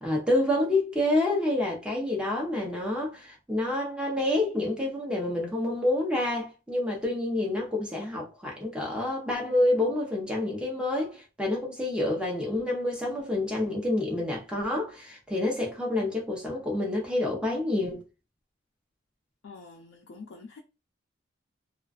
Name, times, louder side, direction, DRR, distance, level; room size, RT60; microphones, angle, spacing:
voice 1, 0.0-18.0, left 1 dB, 5° right, 0.7 m, -28 dB
voice 2, 19.4-20.6, left 4 dB, 70° left, 0.4 m, -46 dB
2.4 x 2.3 x 2.3 m
head